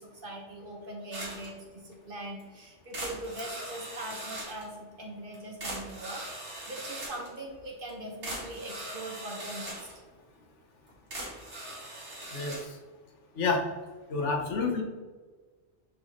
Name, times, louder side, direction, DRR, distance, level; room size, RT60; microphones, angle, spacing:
voice 1, 0.0-9.9, right 1 dB, 50° right, -1 dB, 1.5 m, -41 dB
sound 1, 1.1-1.5 1.9-2.0 2.4-2.5 2.9-4.7 5.3-5.4 5.6-7.3 7.9-8.0 8.2-10.0 10.9-12.6, right 1 dB, 75° right, 2.0 m, -40 dB
voice 2, 14.1-14.8, left 4 dB, 90° left, 2 dB, 1.4 m, -28 dB
6.4 x 4.7 x 3.1 m, 1.4 s
omnidirectional pair, 1.2 m